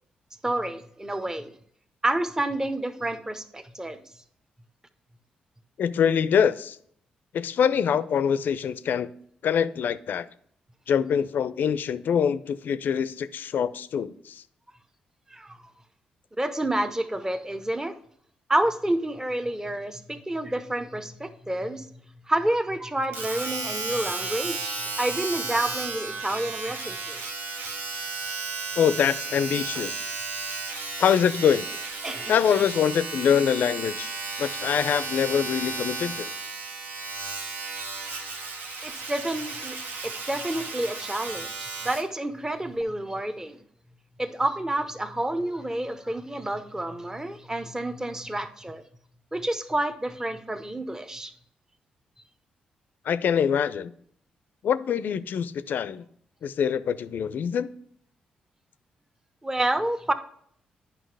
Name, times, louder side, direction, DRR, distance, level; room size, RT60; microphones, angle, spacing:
voice 1, 0.4-1.5 2.0-4.0 15.3-15.6 16.4-17.9 18.5-21.9 22.3-27.2 32.0-32.4 38.8-39.8 40.0-43.6 44.2-48.8 49.3-51.3 59.4-60.1, right 1 dB, 15° right, 9 dB, 0.8 m, -29 dB
voice 2, 5.8-6.8 7.3-9.1 9.4-10.3 10.9-14.4 28.8-30.0 31.0-31.7 32.3-34.1 34.4-36.3 53.1-53.9 54.6-56.0 56.4-57.7, left 8 dB, 65° left, 15 dB, 0.4 m, -24 dB
Domestic sounds home sounds, 23.1-42.1 42.8-42.9, right 3 dB, 70° right, 1.0 m, -34 dB
9.2 x 5.7 x 3.3 m, 0.65 s
hypercardioid pair, 45°, 4 cm